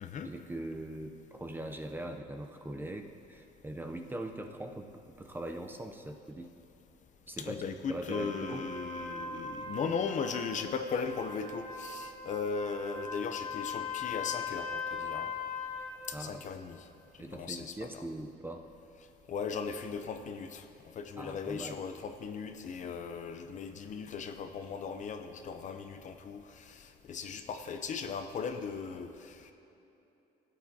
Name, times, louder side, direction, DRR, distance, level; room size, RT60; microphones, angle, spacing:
voice 1, 0.2-4.9 5.2-6.5 7.3-7.6 7.9-8.7 9.8-9.9 16.1-16.4 17.2-18.6 21.2-21.8, right 1 dB, 10° right, 4 dB, 0.6 m, -41 dB
voice 2, 7.4-15.3 16.1-16.8 17.3-18.0 19.3-20.7 20.9-29.5, left 5 dB, 45° left, 8 dB, 0.6 m, -37 dB
Trumpet, 8.1-15.9, left 4 dB, 30° left, 1.5 m, -40 dB
16.5 x 8.1 x 2.8 m, 2.9 s
cardioid pair, 110°, 17 cm